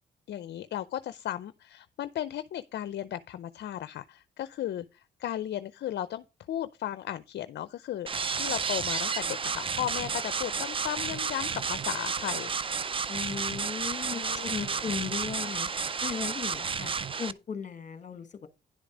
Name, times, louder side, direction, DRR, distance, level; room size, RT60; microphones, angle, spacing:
voice 1, 0.3-8.1 8.3-12.5 14.1-14.7, left 12 dB, 60° left, 0.5 m, -35 dB
sound 1, 8.1-17.3, right 5 dB, 25° right, 0.5 m, -32 dB
voice 2, 13.1-16.9 17.2-18.5, left 6 dB, 40° left, 1.3 m, -36 dB
10.5 x 5.1 x 5.0 m
cardioid pair, 90°, 20 cm